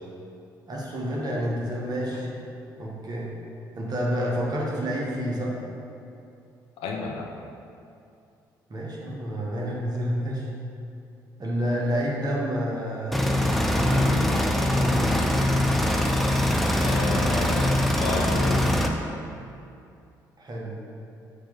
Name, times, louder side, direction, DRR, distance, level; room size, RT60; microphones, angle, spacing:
voice 1, 0.7-2.3 2.8-3.3 3.7-5.5 8.7-10.5 11.4-13.3 13.7-14.3 14.7-15.2 20.4-20.7, equal, 40° right, -4 dB, 1.4 m, -29 dB
voice 2, 6.8-7.3 16.7-18.7, left 3 dB, 65° left, 0 dB, 0.7 m, -31 dB
sound 1, 13.1-18.9, left 1 dB, ahead, 0.6 m, -22 dB
6.1 x 3.0 x 5.4 m, 2.6 s
figure-of-eight pair, 45°, 11 cm